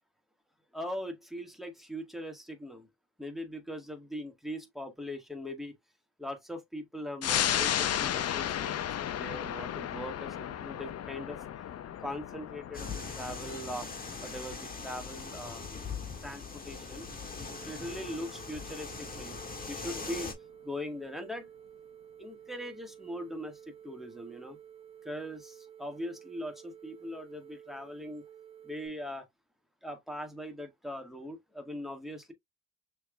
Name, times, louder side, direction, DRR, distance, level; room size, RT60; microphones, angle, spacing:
voice 1, 0.7-2.9 3.2-5.8 6.2-8.8 9.0-11.4 12.0-13.9 14.2-15.6 16.2-17.1 17.6-19.4 19.6-20.3 20.6-21.5 22.2-24.6 25.0-28.2 28.6-29.3 29.8-32.3, equal, ahead, 1.8 m, -40 dB
sound 1, 7.2-18.2 18.6-18.7, left 10 dB, 55° left, 0.7 m, -35 dB
sound 2, 12.7-20.3, left 4 dB, 30° left, 1.9 m, -41 dB
sound 3, 17.4-28.9, right 9 dB, 20° right, 1.7 m, -52 dB
6.2 x 3.4 x 2.4 m
cardioid pair, 90°, 30 cm